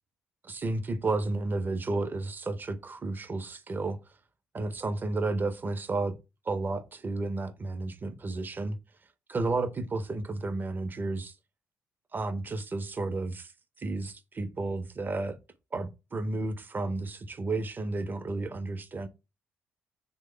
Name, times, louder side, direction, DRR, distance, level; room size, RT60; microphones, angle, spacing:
voice 1, 0.4-4.0 4.5-6.1 6.5-8.8 9.3-11.3 12.1-13.5 13.8-15.4 15.7-19.1, right 3 dB, 30° right, 0.5 m, -32 dB
3.0 x 2.0 x 3.6 m
hypercardioid pair, 50°, 6 cm